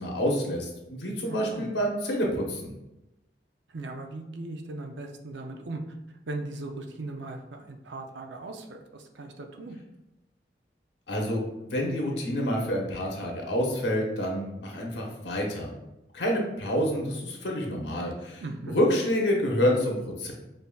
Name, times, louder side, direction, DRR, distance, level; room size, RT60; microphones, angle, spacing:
voice 1, 0.0-2.7 11.1-11.4 11.7-15.7 16.1-18.4 18.7-20.3, equal, 80° left, -1 dB, 0.9 m, -28 dB
voice 2, 1.3-1.7 3.7-6.0 6.3-9.8 18.4-18.8, right 2 dB, 85° right, 4 dB, 0.5 m, -38 dB
5.3 x 2.7 x 2.3 m, 0.94 s
head